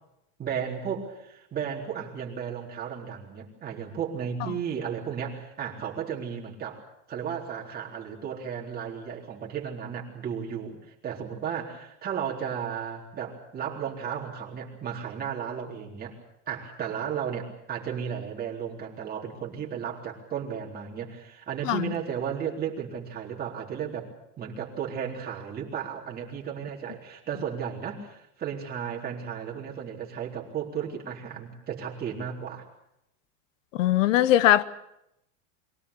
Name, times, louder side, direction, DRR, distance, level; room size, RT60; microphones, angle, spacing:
voice 1, 0.4-6.8 7.1-16.2 16.5-24.1 24.4-32.6, right 8 dB, 25° right, 4.0 m, -34 dB
voice 2, 33.8-34.6, left 13 dB, 90° left, 1.0 m, -20 dB
23.5 x 17.0 x 8.4 m
supercardioid pair, 150°, 38 cm